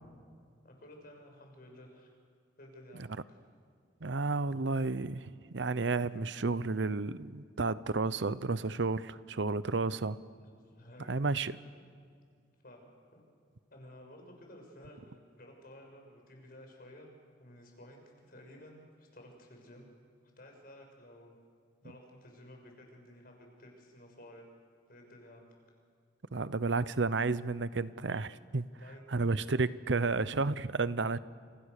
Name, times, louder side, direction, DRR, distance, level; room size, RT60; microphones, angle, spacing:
voice 1, 0.6-2.1 2.6-3.4 10.4-11.1 11.6-11.7 12.6-13.3 13.7-17.1 17.4-19.9 20.2-21.4 21.8-24.5 24.9-25.5 28.8-29.5, left 1 dB, 55° left, 2 dB, 6.3 m, -54 dB
voice 2, 4.0-10.2 11.1-11.6 26.3-28.6 29.1-31.2, right 3 dB, 85° right, 16 dB, 0.8 m, -31 dB
29.5 x 28.5 x 6.7 m, 2.2 s
head